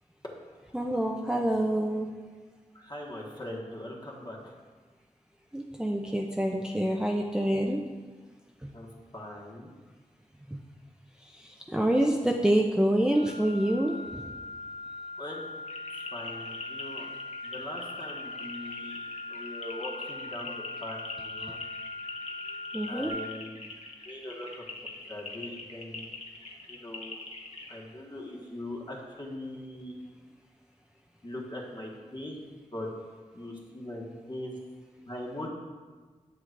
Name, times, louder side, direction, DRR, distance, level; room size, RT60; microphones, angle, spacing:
voice 1, 0.7-2.1 5.5-7.8 8.6-8.7 10.5-10.6 11.2-14.2 21.5-21.6 22.7-23.1, right 1 dB, 5° right, 0 dB, 0.5 m, -27 dB
voice 2, 2.7-4.6 8.7-8.9 9.1-9.7 15.2-15.5 16.1-17.1 17.4-19.0 19.3-21.6 22.9-23.6 24.0-24.7 25.1-26.1 26.7-27.2 27.7-30.0 31.2-32.4 32.7-32.9 33.3-34.5 35.0-35.5, left 1 dB, 35° left, -3 dB, 1.6 m, -41 dB
sound 1, 13.1-23.1, left 3 dB, 80° right, 1.2 m, -41 dB
sound 2, 15.7-27.8, left 3 dB, 55° left, 1.1 m, -43 dB
8.1 x 7.5 x 2.6 m, 1.4 s
wide cardioid pair, 60°, 13 cm